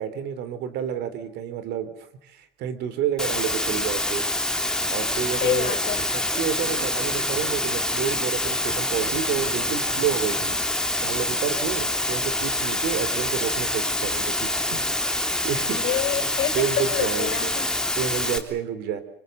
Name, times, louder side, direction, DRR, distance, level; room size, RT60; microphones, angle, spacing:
voice 1, 0.0-1.9 2.2-4.3 4.9-5.7 6.1-10.6 11.0-14.8 15.1-16.0 16.5-17.5 18.0-19.0, right 9 dB, 80° right, 13 dB, 3.5 m, -30 dB
Water, 3.2-18.4, left 1 dB, 5° left, 3.2 m, -26 dB
sound 1, 5.2-10.7, right 3 dB, 30° right, 3.8 m, -42 dB
voice 2, 5.4-6.0 15.7-17.8, left 12 dB, 80° left, 10 dB, 3.9 m, -28 dB
26.0 x 25.0 x 6.9 m, 0.74 s
cardioid pair, 110°, 17 cm